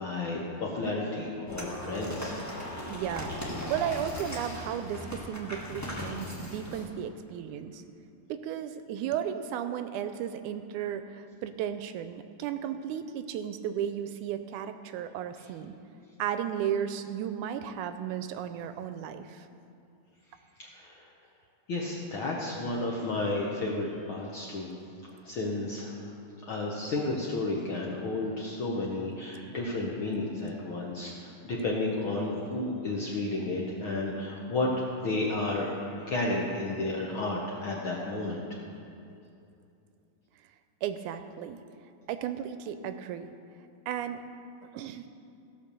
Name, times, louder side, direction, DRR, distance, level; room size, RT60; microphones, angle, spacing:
voice 1, 0.0-2.4 20.6-21.1 21.7-24.7 25.2-26.1 26.5-38.6, left 2 dB, 65° left, -3 dB, 1.3 m, -32 dB
sound 1, 1.5-6.9, left 1 dB, 20° left, 0.4 m, -38 dB
voice 2, 2.9-7.8 8.3-15.7 16.2-19.5 40.8-41.6 42.1-43.3 43.9-44.2 44.6-45.1, right 9 dB, 80° right, 10 dB, 1.9 m, -34 dB
16.0 x 5.8 x 6.7 m, 2.6 s
omnidirectional pair, 3.6 m